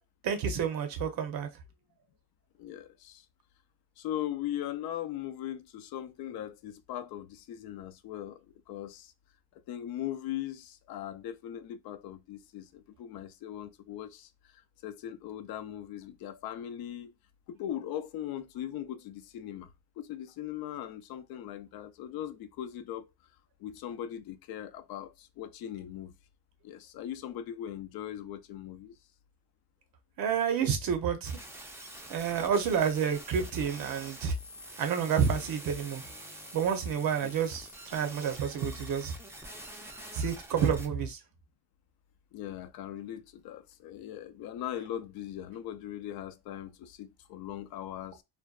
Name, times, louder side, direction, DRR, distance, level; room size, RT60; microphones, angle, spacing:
voice 1, 0.2-1.5 30.2-31.4 32.1-34.3 34.8-36.0 36.5-39.2 40.1-41.2, right 7 dB, 60° right, 0.7 m, -29 dB
voice 2, 2.6-3.3 4.0-9.1 9.7-17.1 17.5-19.7 20.0-23.1 23.6-26.1 26.6-28.9 37.2-37.3 42.3-48.2, left 11 dB, 70° left, 0.5 m, -39 dB
sound 1, 31.2-40.9, right 1 dB, 5° right, 0.4 m, -46 dB
2.5 x 2.2 x 2.2 m
cardioid pair, 95°, 38 cm